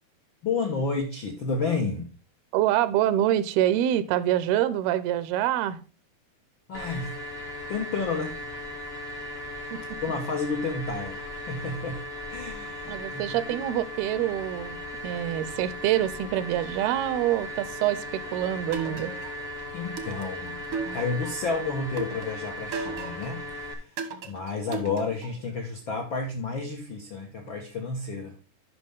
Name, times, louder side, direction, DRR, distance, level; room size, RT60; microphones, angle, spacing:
voice 1, 0.4-2.1 6.7-7.2 7.7-8.4 10.0-13.4 19.7-20.6 20.9-24.0 24.2-28.4, left 4 dB, 85° left, 1.0 m, -31 dB
voice 2, 2.5-5.8 9.7-9.8 12.9-14.8 15.0-19.1, right 12 dB, 85° right, 2.6 m, -26 dB
sound 1, 6.7-23.7, left 1 dB, 65° left, 0.5 m, -37 dB
sound 2, 18.7-19.5 20.0-21.4 22.0-23.4 24.0-25.4, right 5 dB, 65° right, 1.3 m, -36 dB
12.0 x 5.6 x 3.5 m
omnidirectional pair, 4.5 m